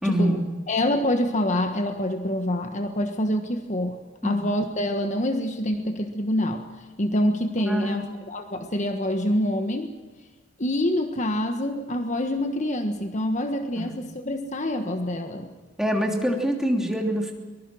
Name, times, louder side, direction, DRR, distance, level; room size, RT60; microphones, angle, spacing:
voice 1, 0.0-0.4 4.2-4.3 7.6-8.0 13.8-13.9 15.8-17.3, equal, 5° right, 1 dB, 3.1 m, -24 dB
voice 2, 0.7-6.6 7.0-9.9 10.6-15.5, left 1 dB, 40° left, 6 dB, 1.4 m, -26 dB
23.5 x 20.0 x 6.3 m, 1.3 s
head